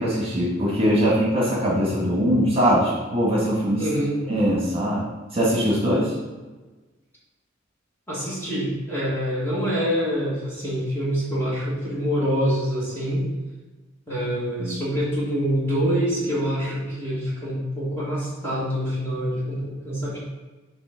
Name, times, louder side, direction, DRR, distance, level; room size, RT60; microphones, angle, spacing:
voice 1, 0.0-3.8 4.3-5.1 5.3-6.1 14.6-14.8, equal, 25° right, -5 dB, 1.6 m, -21 dB
voice 2, 3.8-4.2 8.1-13.2 14.1-20.2, equal, 10° left, -8 dB, 1.6 m, -25 dB
6.0 x 3.2 x 5.8 m, 1.3 s
head